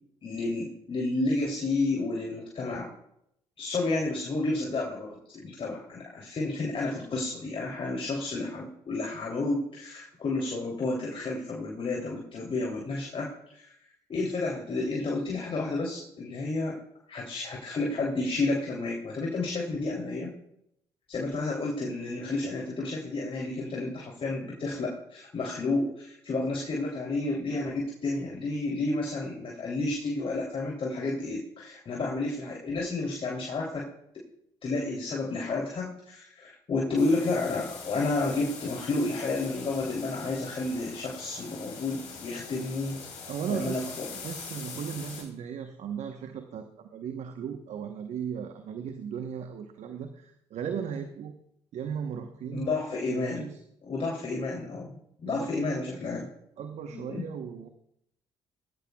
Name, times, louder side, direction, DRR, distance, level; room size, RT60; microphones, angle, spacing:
voice 1, 0.2-2.9 3.6-13.7 14.1-16.8 17.1-20.3 21.1-33.9 34.6-43.0 43.5-44.1 52.5-53.4 53.9-56.3 56.9-57.2, left 2 dB, 45° left, -3 dB, 3.1 m, -31 dB
sound 1, 37.0-45.2, left 5 dB, 70° left, 4.5 m, -43 dB
voice 2, 43.3-51.3 51.7-52.7 53.1-53.6 55.2-55.8 56.6-57.7, right 7 dB, 60° right, 7 dB, 1.1 m, -37 dB
20.0 x 15.0 x 2.4 m, 0.76 s
hypercardioid pair, 50°, 13 cm